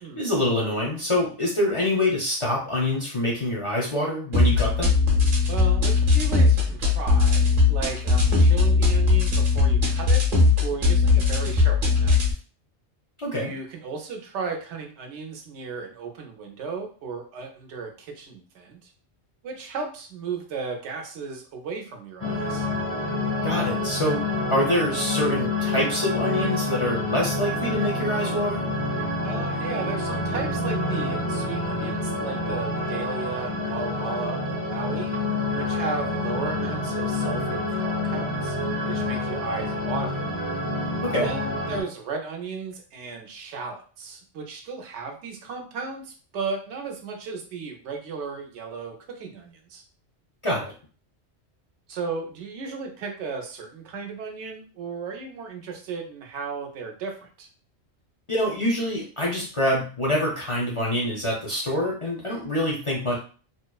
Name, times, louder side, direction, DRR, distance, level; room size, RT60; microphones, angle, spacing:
voice 1, 0.2-4.9 13.2-13.5 23.4-24.2 24.5-28.7 41.0-41.3 50.4-50.7 58.3-63.2, left 1 dB, 45° left, -4 dB, 0.4 m, -25 dB
sound 1, 4.3-12.3, left 4 dB, 55° right, 0.8 m, -19 dB
voice 2, 5.5-10.2 10.6-12.4 13.3-18.9 19.4-22.7 29.2-35.1 35.5-38.6 38.8-40.3 41.2-49.8 51.9-57.5, right 4 dB, 85° right, 3 dB, 0.9 m, -35 dB
sound 2, 22.2-41.8, left 2 dB, 15° right, 0.7 m, -28 dB
2.7 x 2.0 x 2.2 m, 0.40 s
omnidirectional pair, 1.2 m